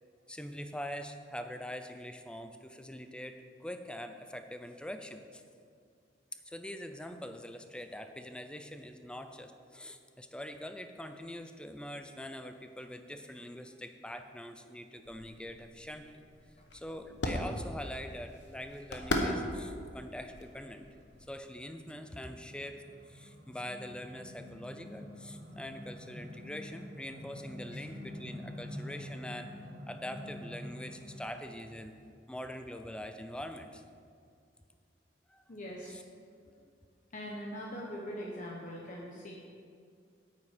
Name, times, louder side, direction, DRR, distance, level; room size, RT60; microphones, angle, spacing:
voice 1, 0.3-5.4 6.5-16.1 16.7-20.9 21.3-29.5 29.9-32.0 32.3-33.8 35.3-35.4 35.9-36.0, left 1 dB, 5° left, 8 dB, 0.5 m, -43 dB
sound 1, 15.0-21.3, left 1 dB, 80° left, 1.1 m, -38 dB
sound 2, 20.9-31.4, left 1 dB, 50° right, 1.2 m, -47 dB
voice 2, 35.5-35.9 36.5-36.6 37.1-39.3, equal, 45° left, -3 dB, 1.0 m, -42 dB
8.8 x 8.4 x 5.0 m, 2.3 s
head